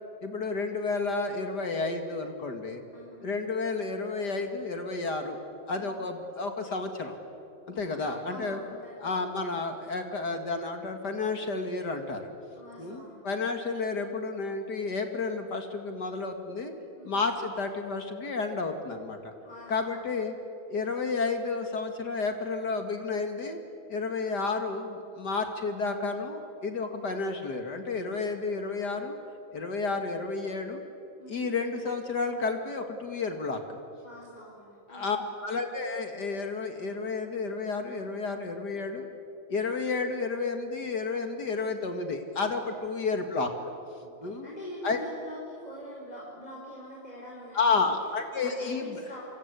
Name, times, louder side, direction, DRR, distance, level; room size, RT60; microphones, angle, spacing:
voice 1, 0.2-2.8 3.2-5.4 5.7-7.2 7.7-8.6 9.0-12.3 12.8-16.7 17.0-19.3 19.7-20.3 20.7-23.6 23.9-29.2 29.5-30.8 31.3-33.8 34.9-39.1 39.5-43.5 44.2-44.5 44.8-45.0 47.5-49.0, left 4 dB, 55° left, 6 dB, 2.5 m, -31 dB
voice 2, 2.9-3.3 5.7-5.9 7.7-9.1 12.5-13.6 16.9-17.2 19.4-20.0 31.2-31.5 34.0-35.2 44.0-47.9 48.4-49.2, left 1 dB, 20° left, -3 dB, 4.4 m, -45 dB
27.5 x 25.5 x 8.3 m, 2.7 s
omnidirectional pair, 2.2 m